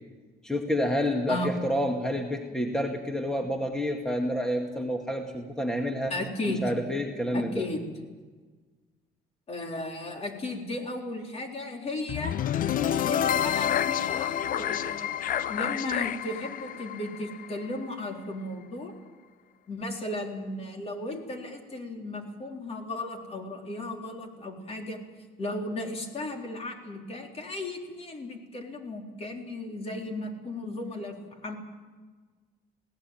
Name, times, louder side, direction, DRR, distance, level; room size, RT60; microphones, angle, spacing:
voice 1, 0.4-6.1 6.6-7.6, equal, 5° left, 2 dB, 2.0 m, -29 dB
voice 2, 6.1-6.6 7.3-7.9 9.5-12.4 13.0-15.2 15.5-18.9 19.7-25.0 25.4-31.2 31.4-31.6, left 2 dB, 35° left, 2 dB, 4.0 m, -35 dB
sound 1, 12.1-18.2, left 10 dB, 55° left, 0.7 m, -29 dB
21.0 x 17.5 x 9.2 m, 1.4 s
cardioid pair, 110°, 17 cm